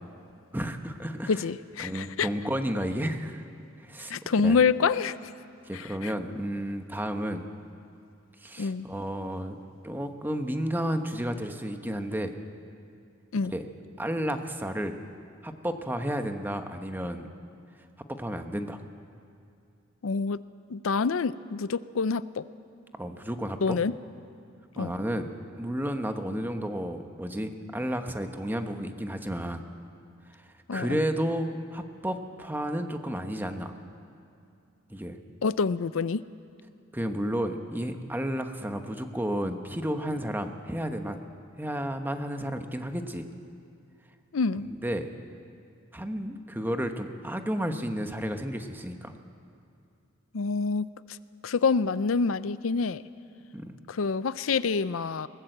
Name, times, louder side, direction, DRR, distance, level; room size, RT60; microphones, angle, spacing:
voice 1, 0.5-1.4 1.8-3.4 3.8-4.6 5.7-7.5 8.4-9.6 9.8-12.3 13.4-13.7 14.0-15.0 15.4-17.3 18.1-18.8 23.0-23.8 24.8-25.3 25.5-29.6 30.7-33.7 34.9-35.2 36.9-41.2 41.6-43.2 44.7-45.1 45.9-49.1 53.5-53.7, equal, 10° right, 6 dB, 1.2 m, -32 dB
voice 2, 1.3-2.3 4.1-5.2 5.7-6.1 8.6-8.9 13.3-13.5 20.0-20.4 20.7-22.4 23.6-23.9 24.8-24.9 30.7-31.0 35.4-36.2 44.3-44.7 50.3-50.9 51.4-53.0 53.9-55.3, left 5 dB, 85° left, 15 dB, 0.5 m, -26 dB
21.5 x 19.0 x 8.0 m, 2.6 s
head